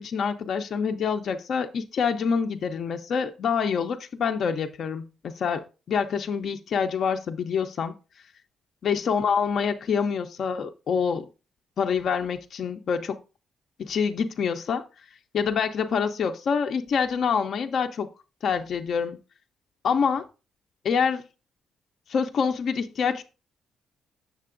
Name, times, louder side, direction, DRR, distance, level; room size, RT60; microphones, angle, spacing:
voice 1, 0.0-7.9 8.8-11.3 11.8-13.2 13.8-14.8 15.3-18.1 18.4-19.2 19.8-20.2 20.8-21.3 22.1-23.2, left 6 dB, 60° left, 0.5 m, -26 dB
6.7 x 6.7 x 2.5 m
cardioid pair, 90°, 0 cm